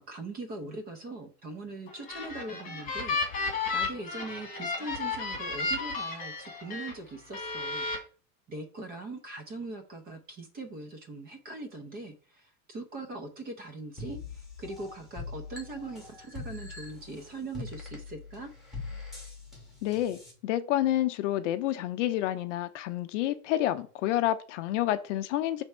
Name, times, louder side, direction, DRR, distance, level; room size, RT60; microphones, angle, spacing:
voice 1, 0.0-3.4 3.7-7.9 8.5-18.5, right 2 dB, 20° right, 5 dB, 0.7 m, -41 dB
sound 1, 1.9-6.9 7.3-8.0, left 4 dB, 20° left, 1.9 m, -33 dB
sound 2, 14.0-20.3, left 3 dB, ahead, 1.9 m, -43 dB
voice 2, 19.8-25.6, left 13 dB, 55° left, 11 dB, 0.6 m, -29 dB
6.1 x 3.5 x 5.4 m, 0.40 s
supercardioid pair, 155°, 44 cm